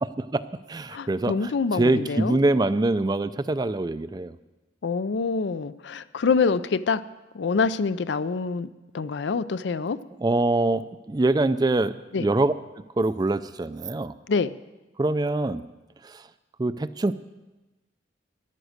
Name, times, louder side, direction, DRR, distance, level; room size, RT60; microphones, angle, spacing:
voice 1, 0.0-4.4 10.2-14.1 15.0-15.6 16.0-16.2 16.6-17.1, right 2 dB, 20° right, 14 dB, 0.4 m, -24 dB
voice 2, 0.9-2.4 4.8-7.0 7.3-8.7 8.9-10.0 12.1-12.3 14.3-14.5, left 4 dB, 70° left, 15 dB, 0.5 m, -25 dB
13.0 x 11.0 x 6.5 m, 1.1 s
head